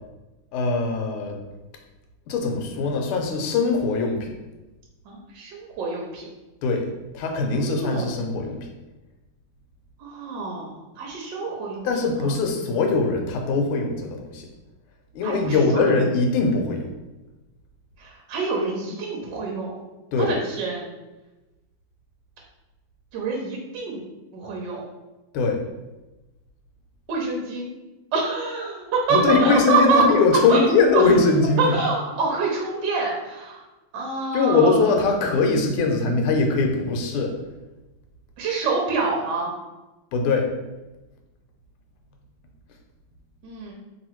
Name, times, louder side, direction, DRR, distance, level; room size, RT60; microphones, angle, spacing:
voice 1, 0.5-1.4 2.3-4.3 6.6-6.9 7.1-8.7 11.8-14.5 15.1-16.9 20.1-20.3 25.3-25.6 29.1-31.8 34.3-37.3 40.1-40.5, left 4 dB, 80° left, 3 dB, 1.5 m, -21 dB
voice 2, 5.1-6.3 7.5-8.2 10.0-11.9 15.2-16.0 18.0-19.8 20.2-20.8 23.1-24.0 24.3-24.9 27.1-27.7 28.1-30.0 30.5-30.6 30.9-31.0 31.6-33.6 33.9-34.8 38.4-39.5 43.4-43.7, right 4 dB, 65° right, -1 dB, 1.2 m, -26 dB
3.1 x 3.0 x 4.3 m, 1.1 s
omnidirectional pair, 2.4 m